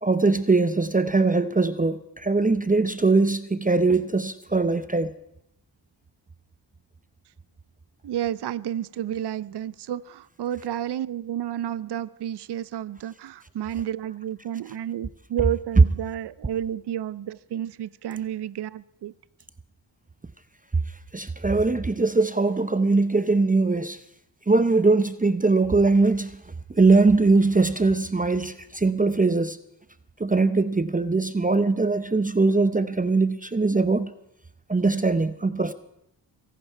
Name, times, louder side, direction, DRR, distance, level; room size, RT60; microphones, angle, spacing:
voice 1, 0.0-5.1 21.1-24.0 24.5-26.4 26.7-29.6 30.2-34.1 34.7-35.7, right 3 dB, 20° right, 0.7 m, -21 dB
voice 2, 8.0-19.1, right 11 dB, 65° right, 0.6 m, -31 dB
24.0 x 11.0 x 4.6 m
cardioid pair, 60°, 44 cm